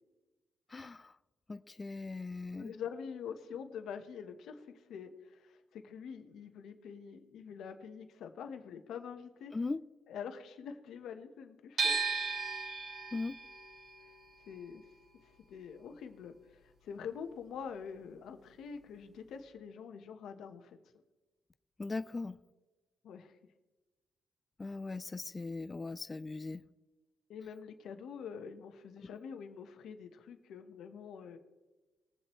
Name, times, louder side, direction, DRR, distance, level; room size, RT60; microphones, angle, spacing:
voice 1, 0.7-1.1 1.5-2.7 9.5-9.8 13.1-13.4 21.8-22.4 24.6-26.6, left 3 dB, 25° left, 12 dB, 0.4 m, -39 dB
voice 2, 2.5-9.6 10.1-12.0 14.5-14.8 15.5-20.8 23.0-23.4 27.3-31.4, left 7 dB, 75° left, 7 dB, 1.3 m, -45 dB
sound 1, 11.8-17.8 18.1-19.4, right 5 dB, 45° right, 2.7 m, -38 dB
21.0 x 7.5 x 3.2 m, 1.2 s
cardioid pair, 90°, 0 cm